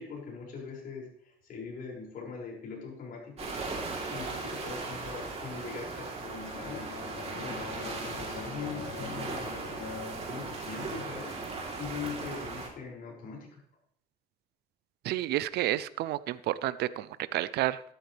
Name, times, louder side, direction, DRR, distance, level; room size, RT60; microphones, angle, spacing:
voice 1, 0.0-3.5 4.0-6.9 7.3-9.6 10.3-11.4 11.7-13.6, left 5 dB, 60° left, -2 dB, 6.2 m, -41 dB
sound 1, 3.4-12.7, right 3 dB, 40° right, 3.5 m, -38 dB
Bowed string instrument, 6.3-11.2, left 6 dB, 85° left, 2.7 m, -44 dB
voice 2, 15.0-17.8, right 14 dB, 75° right, 16 dB, 0.6 m, -30 dB
13.5 x 12.5 x 3.4 m, 0.69 s
cardioid pair, 110°, 17 cm